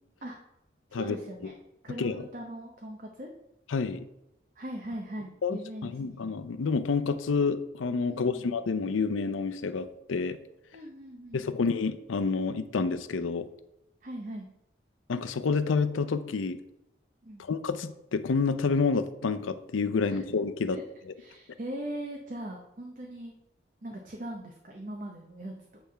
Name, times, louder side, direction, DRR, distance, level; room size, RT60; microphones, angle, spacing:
voice 1, 0.9-1.5 1.8-3.3 4.6-6.2 8.1-8.5 10.7-11.5 14.0-14.5 17.2-17.4 20.0-20.2 20.7-20.8 21.2-23.3 23.8-25.5, right 1 dB, 40° right, 1 dB, 0.7 m, -40 dB
voice 2, 3.7-4.0 5.4-10.4 11.3-13.5 15.1-16.6 17.4-20.8, left 4 dB, 90° left, 11 dB, 0.5 m, -29 dB
8.4 x 3.4 x 5.6 m, 0.85 s
head